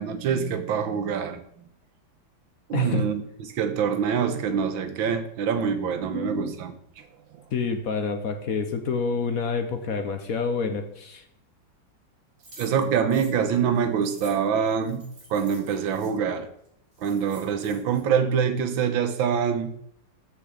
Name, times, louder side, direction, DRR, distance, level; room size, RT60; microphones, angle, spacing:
voice 1, 0.0-1.4 2.7-7.1 7.3-7.4 12.6-15.1 15.3-16.5 17.0-19.7, right 7 dB, 85° right, 1.7 m, -25 dB
voice 2, 2.7-3.0 6.1-6.5 7.5-11.2, left 5 dB, 55° left, 1.2 m, -28 dB
sound 1, 12.4-16.1 16.6-16.7 16.9-18.0, right 1 dB, 50° right, 3.7 m, -49 dB
13.5 x 4.8 x 5.0 m
omnidirectional pair, 2.1 m